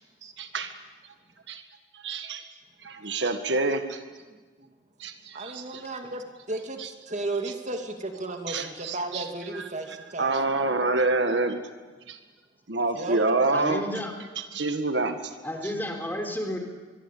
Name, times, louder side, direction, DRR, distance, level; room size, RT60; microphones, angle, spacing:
voice 1, 0.4-0.7 1.5-1.6 1.9-2.4 2.8-4.0 5.0-5.8 6.8-6.9 7.4-7.5 8.5-9.2 9.5-9.6 10.2-11.6 12.1-12.2 12.7-13.8 14.3-15.3 15.6-15.7, right 3 dB, 70° right, 7 dB, 1.8 m, -27 dB
voice 2, 4.3-4.7 5.3-10.7 12.9-13.4 15.0-15.1, right 2 dB, 40° right, 4 dB, 2.5 m, -34 dB
voice 3, 13.5-14.1 15.4-16.6, left 1 dB, 10° left, 4 dB, 3.7 m, -31 dB
24.0 x 22.5 x 8.5 m, 1.4 s
head